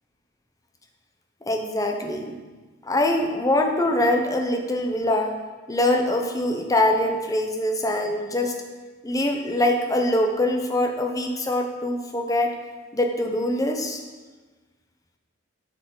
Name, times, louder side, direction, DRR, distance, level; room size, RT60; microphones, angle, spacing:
voice 1, 1.5-2.4 2.8-5.4 5.7-8.6 9.0-12.5 12.9-14.0, left 1 dB, 15° left, 4 dB, 0.6 m, -23 dB
7.6 x 6.4 x 3.8 m, 1.3 s
head